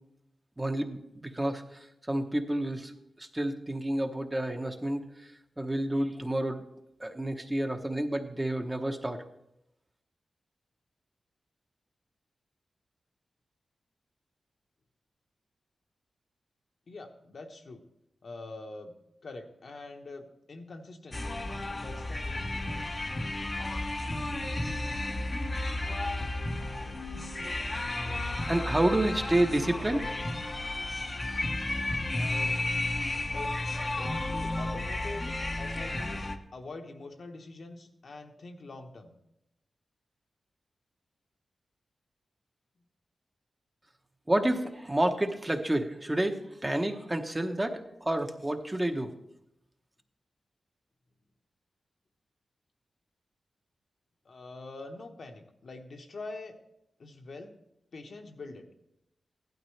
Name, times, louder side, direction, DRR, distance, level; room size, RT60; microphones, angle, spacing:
voice 1, 0.6-2.9 3.2-6.6 7.0-9.2 28.5-30.1 44.3-49.1, right 1 dB, 15° right, 4 dB, 0.9 m, -29 dB
voice 2, 16.9-17.8 18.2-19.0 19.2-21.4 21.8-22.9 32.1-32.6 33.3-35.3 35.6-39.1 54.2-56.6 57.0-57.5 57.9-58.7, left 2 dB, 60° left, 3 dB, 1.2 m, -44 dB
sound 1, 21.1-36.4, left 2 dB, 30° left, 0.8 m, -33 dB
16.0 x 12.0 x 3.2 m, 0.84 s
wide cardioid pair, 115°, 0 cm